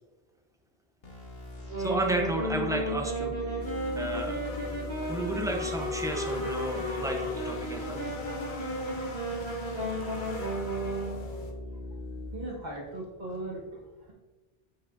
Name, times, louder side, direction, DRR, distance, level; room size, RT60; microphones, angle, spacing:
sound 1, 1.0-12.3, left 1 dB, 70° left, 1.6 m, -41 dB
Wind instrument woodwind instrument, 1.6-11.3, right 1 dB, 85° right, 2.1 m, -34 dB
voice 1, 1.8-3.6 3.9-4.4 5.1-8.0, right 1 dB, 5° right, 1 dB, 0.6 m, -32 dB
sound 2, 3.6-11.5, left 2 dB, 55° left, 0.9 m, -40 dB
voice 2, 12.3-14.1, right 1 dB, 45° right, -3 dB, 1.6 m, -39 dB
7.2 x 6.2 x 2.6 m, 1.2 s
omnidirectional pair, 1.1 m